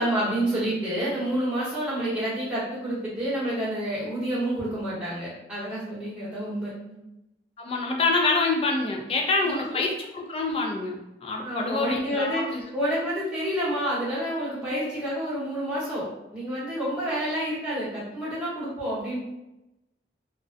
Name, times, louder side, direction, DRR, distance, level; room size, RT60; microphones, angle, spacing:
voice 1, 0.0-7.0 9.4-9.8 11.4-16.1 16.3-19.2, right 1 dB, 5° right, -10 dB, 0.9 m, -29 dB
voice 2, 7.6-12.6, left 3 dB, 30° left, 1 dB, 0.3 m, -26 dB
2.5 x 2.1 x 2.4 m, 0.93 s
head